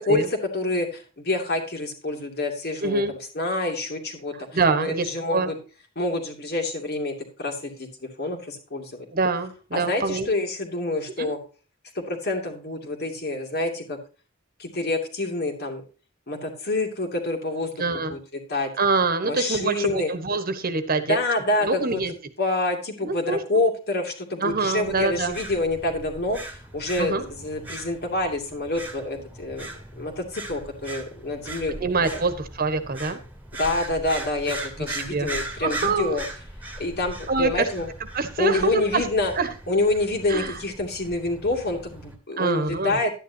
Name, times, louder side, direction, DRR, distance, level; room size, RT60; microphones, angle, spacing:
voice 1, 0.0-3.0 3.3-4.3 4.8-5.5 6.0-9.1 9.7-11.4 11.9-14.0 14.6-15.8 16.3-17.7 18.1-18.2 18.5-18.7 19.2-20.1 21.0-22.0 22.4-29.7 30.0-31.9 33.5-36.2 36.8-37.9 38.4-39.3 39.7-43.1, left 2 dB, 50° left, 3 dB, 2.6 m, -27 dB
voice 2, 2.8-3.1 4.5-5.5 9.1-10.3 11.2-11.3 17.8-18.2 18.8-21.2 21.6-22.1 23.0-23.4 24.4-25.4 27.0-27.2 31.8-33.2 34.9-35.3 35.6-36.2 37.3-37.7 38.1-39.0 39.4-39.5 40.3-40.5 42.4-43.0, right 4 dB, 45° right, 10 dB, 1.4 m, -25 dB
sound 1, 24.8-42.2, right 1 dB, 10° right, 1.9 m, -39 dB
12.0 x 9.9 x 2.8 m, 0.36 s
head